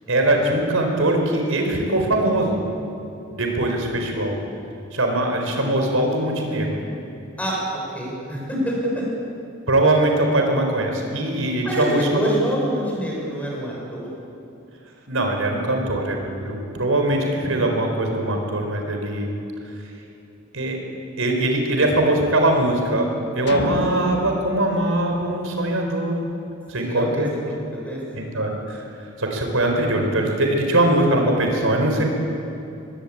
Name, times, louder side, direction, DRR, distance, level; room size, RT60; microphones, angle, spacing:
voice 1, 0.1-2.6 3.3-4.4 4.9-6.8 9.7-12.3 15.1-19.3 20.5-20.8 21.2-26.2 26.7-27.3 28.1-28.8 29.2-32.0, right 1 dB, 85° right, 3 dB, 4.6 m, -21 dB
voice 2, 3.5-3.8 7.4-9.1 11.6-14.1 26.7-28.4, equal, 5° left, -3 dB, 7.0 m, -27 dB
sound 1, 23.5-25.9, left 1 dB, 55° left, 1.7 m, -32 dB
24.0 x 21.0 x 8.8 m, 2.8 s
head